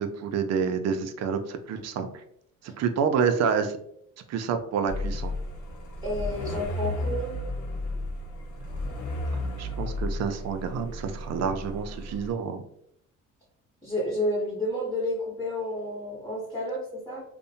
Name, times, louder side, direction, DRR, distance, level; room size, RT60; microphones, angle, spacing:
voice 1, 0.0-2.2 2.6-3.8 4.3-5.3 9.3-12.6, right 6 dB, 60° right, 7 dB, 0.5 m, -28 dB
sound 1, 4.9-12.3, left 1 dB, 70° left, 0.8 m, -33 dB
voice 2, 6.0-7.3 13.8-17.2, left 1 dB, 10° left, -7 dB, 1.0 m, -30 dB
2.7 x 2.1 x 2.6 m, 0.70 s
cardioid pair, 85°, 31 cm